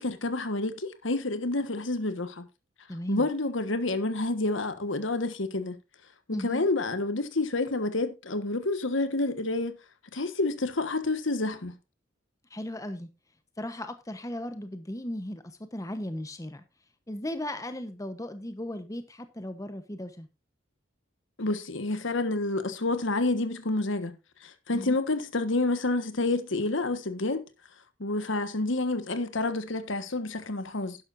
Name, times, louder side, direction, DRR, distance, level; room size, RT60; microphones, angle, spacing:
voice 1, 0.0-2.5 3.1-5.8 6.3-9.8 10.1-11.7 21.4-24.2 24.4-27.5 28.0-31.0, left 2 dB, 75° left, 1.4 m, -29 dB
voice 2, 2.9-3.3 6.3-6.6 12.5-13.1 13.6-15.4 15.7-16.6 17.1-20.3 24.7-25.0, left 1 dB, 15° left, 1.0 m, -36 dB
12.0 x 11.0 x 2.6 m
head